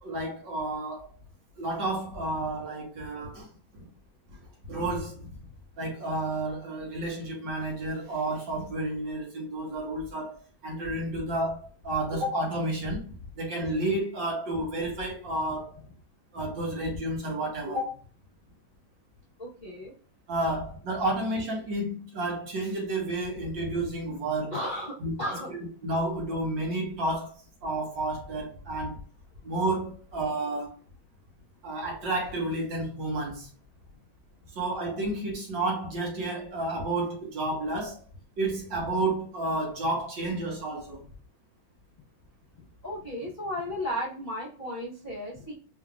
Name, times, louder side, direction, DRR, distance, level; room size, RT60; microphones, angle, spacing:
voice 1, 0.0-1.1 1.6-3.5 3.7-3.9 4.7-5.4 5.8-15.9 16.3-18.0 20.3-24.5 25.0-25.1 25.8-27.4 27.6-29.0 29.4-30.7 31.6-33.5 34.5-38.0 38.4-41.0, right 2 dB, 75° right, 2.4 m, -31 dB
voice 2, 19.4-19.9 24.5-25.5 42.8-45.5, left 1 dB, 30° left, 0.9 m, -34 dB
4.6 x 3.6 x 2.3 m
omnidirectional pair, 2.0 m